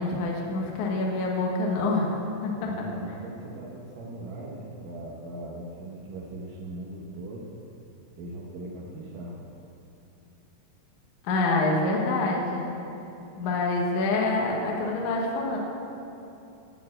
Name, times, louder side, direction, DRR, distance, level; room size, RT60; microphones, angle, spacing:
voice 1, 0.0-2.1 2.4-2.7 11.2-12.7 13.4-15.6, left 2 dB, 90° left, -1 dB, 1.7 m, -26 dB
voice 2, 2.6-7.5 8.2-9.4, right 1 dB, 90° right, -3 dB, 1.8 m, -39 dB
13.5 x 4.5 x 8.5 m, 2.8 s
omnidirectional pair, 5.3 m